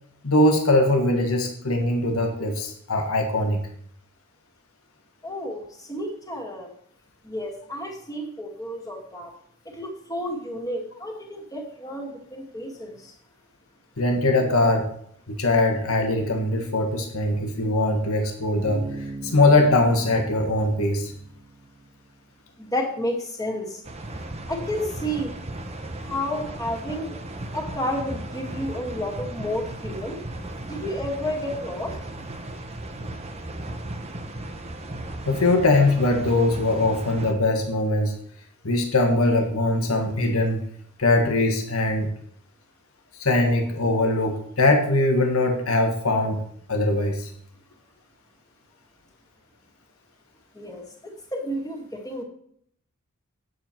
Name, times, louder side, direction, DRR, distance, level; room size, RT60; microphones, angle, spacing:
voice 1, 0.2-3.6 14.0-14.9 15.3-18.8 19.2-21.1 35.2-38.1 38.6-40.6 41.0-42.1 43.2-46.4 46.7-47.3, left 2 dB, 80° left, 3 dB, 1.7 m, -21 dB
voice 2, 5.2-6.7 7.2-9.3 9.7-13.1 22.6-23.8 24.5-25.3 26.0-27.2 27.5-30.2 30.7-32.0 50.5-52.2, left 1 dB, 15° left, 0 dB, 2.1 m, -31 dB
Bass guitar, 18.6-22.1, right 3 dB, 10° right, 1.9 m, -39 dB
sound 1, 23.8-37.3, right 1 dB, 30° right, 1.0 m, -36 dB
9.3 x 8.0 x 4.5 m, 0.66 s
head